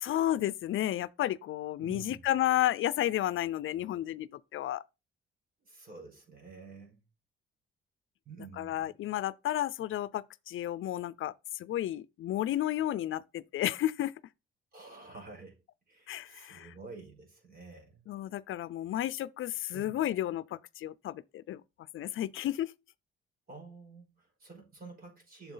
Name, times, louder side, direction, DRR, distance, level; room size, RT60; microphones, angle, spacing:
voice 1, 0.0-4.8 8.6-14.1 16.1-16.7 18.1-21.6 21.9-22.7, left 13 dB, 70° left, 0.5 m, -32 dB
voice 2, 1.8-2.2 5.6-7.0 8.3-8.9 14.7-18.0 19.7-20.0 23.5-25.5, right 4 dB, 45° right, 5.4 m, -49 dB
8.0 x 6.9 x 3.9 m
cardioid pair, 105°, 21 cm